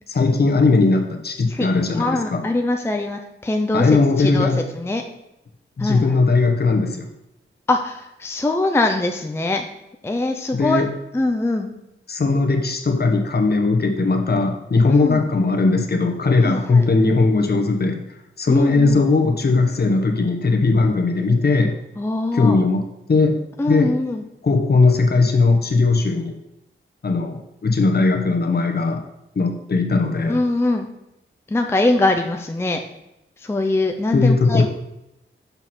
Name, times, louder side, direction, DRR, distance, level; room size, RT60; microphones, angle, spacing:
voice 1, 0.1-2.4 3.7-4.6 5.8-7.1 10.5-10.9 12.1-18.0 18.4-21.8 22.3-22.8 23.1-23.4 23.7-23.9 24.4-26.4 27.0-29.0 29.3-30.4 34.1-34.6, left 3 dB, 50° left, 3 dB, 1.0 m, -18 dB
voice 2, 1.9-5.0 5.8-6.2 7.7-9.6 10.0-10.8 11.1-11.7 14.9-15.2 16.4-16.9 18.5-19.0 22.0-22.6 23.6-24.2 30.2-30.9 31.5-32.8 33.4-34.6, left 2 dB, 10° left, 4 dB, 0.5 m, -22 dB
6.9 x 5.9 x 4.3 m, 0.89 s
wide cardioid pair, 145°, 21 cm